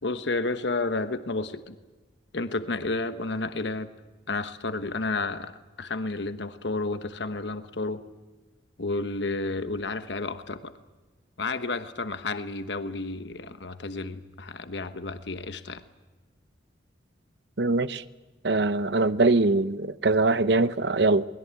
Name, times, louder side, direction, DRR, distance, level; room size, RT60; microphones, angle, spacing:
voice 1, 0.0-1.8 2.3-3.9 4.3-5.5 5.8-8.0 8.8-10.7 11.4-15.8, left 3 dB, 80° left, 10 dB, 1.2 m, -31 dB
voice 2, 17.6-18.0 18.4-21.3, right 3 dB, 70° right, 14 dB, 0.9 m, -22 dB
23.0 x 20.5 x 8.9 m, 1.2 s
head